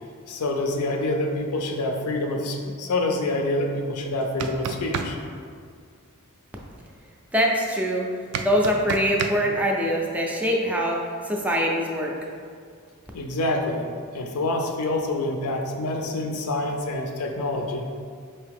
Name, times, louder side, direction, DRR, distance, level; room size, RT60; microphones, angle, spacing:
voice 1, 0.3-5.2 13.1-13.9 14.1-17.9, left 2 dB, 85° left, 3 dB, 0.5 m, -26 dB
sound 1, 4.2-5.1 8.3-9.3, right 6 dB, 75° right, 0.3 m, -29 dB
voice 2, 7.3-8.1 8.4-11.0 11.3-12.1, equal, 5° right, -2 dB, 0.4 m, -23 dB
4.6 x 2.7 x 3.4 m, 2.1 s
head